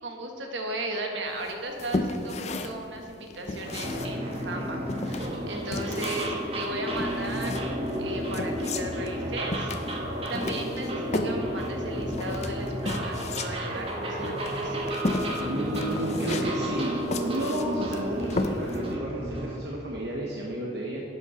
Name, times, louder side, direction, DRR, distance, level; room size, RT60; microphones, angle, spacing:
voice 1, 0.0-9.7 10.3-14.8, right 1 dB, 75° right, 2 dB, 1.4 m, -36 dB
sound 1, 1.4-18.9, left 2 dB, 35° left, 0.5 m, -34 dB
sound 2, 3.6-19.6, equal, 30° right, 1.2 m, -32 dB
voice 2, 15.4-21.0, right 1 dB, 60° right, -4 dB, 1.1 m, -32 dB
11.0 x 5.8 x 5.6 m, 2.5 s
head